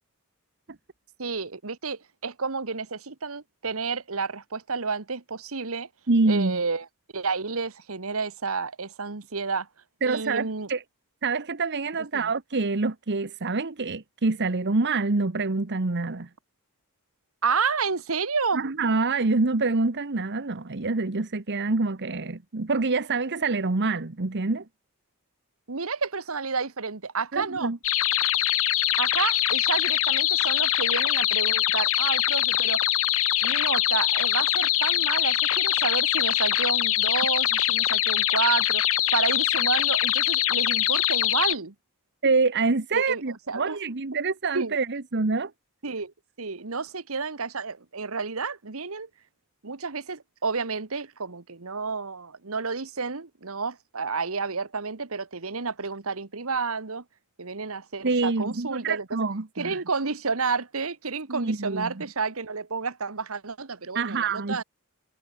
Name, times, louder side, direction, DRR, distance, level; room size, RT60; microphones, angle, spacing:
voice 1, 1.2-5.9 6.3-6.8 7.1-9.7 10.1-10.7 12.1-12.3 17.4-18.6 25.7-27.7 29.0-32.8 33.4-38.8 39.1-41.7 42.9-43.2 43.5-43.8 44.5-44.7 45.8-46.1 46.4-49.1 49.6-57.0 57.4-59.1 59.6-64.6, right 4 dB, 65° right, 1.4 m, -30 dB
voice 2, 6.1-6.6 10.0-10.8 11.2-16.3 18.5-24.6 27.3-27.8 42.2-45.5 58.0-59.8 61.3-62.1 63.9-64.6, right 3 dB, 50° right, 1.1 m, -26 dB
sound 1, 27.8-41.6, left 13 dB, 65° left, 2.1 m, -23 dB
head